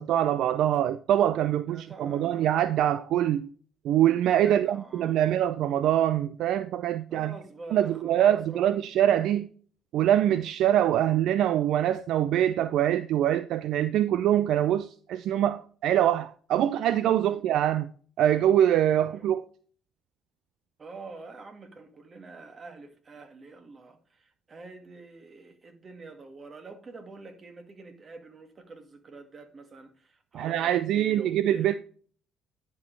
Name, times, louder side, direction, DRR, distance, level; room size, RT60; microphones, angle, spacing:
voice 1, 0.0-3.5 3.8-7.3 7.7-9.5 9.9-17.9 18.2-19.4 30.3-31.8, right 11 dB, 70° right, 0.4 m, -24 dB
voice 2, 1.7-2.5 4.4-5.3 7.1-8.8 17.3-17.4 19.1-19.3 20.8-31.7, right 3 dB, 40° right, 2.0 m, -46 dB
10.5 x 5.3 x 3.2 m
supercardioid pair, 65°, 0 cm